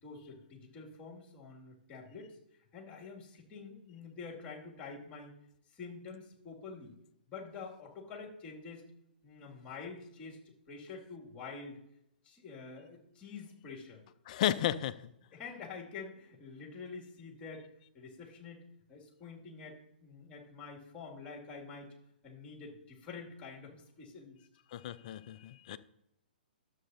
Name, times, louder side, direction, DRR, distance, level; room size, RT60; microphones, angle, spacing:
voice 1, 0.0-2.4 2.7-5.3 5.7-6.9 7.3-8.8 9.2-11.8 12.2-14.0 15.3-17.7 17.9-18.6 18.9-21.9 22.2-24.4, left 4 dB, 25° left, -1 dB, 2.3 m, -47 dB
voice 2, 14.3-15.0 24.7-25.8, left 11 dB, 45° left, 14 dB, 0.5 m, -33 dB
12.5 x 7.4 x 2.7 m, 0.77 s
figure-of-eight pair, 120°, 5 cm